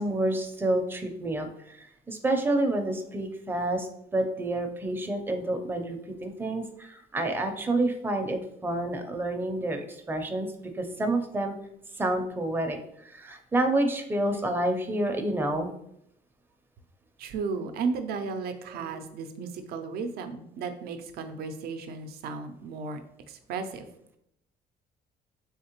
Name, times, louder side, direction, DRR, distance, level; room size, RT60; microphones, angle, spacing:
voice 1, 0.0-1.8 2.1-11.5 12.0-15.7 18.7-19.0, right 1 dB, 10° right, 4 dB, 0.5 m, -29 dB
voice 2, 17.2-23.0 23.3-23.9, right 4 dB, 65° right, 8 dB, 0.5 m, -34 dB
3.5 x 3.1 x 2.9 m, 0.75 s
cardioid pair, 110°, 17 cm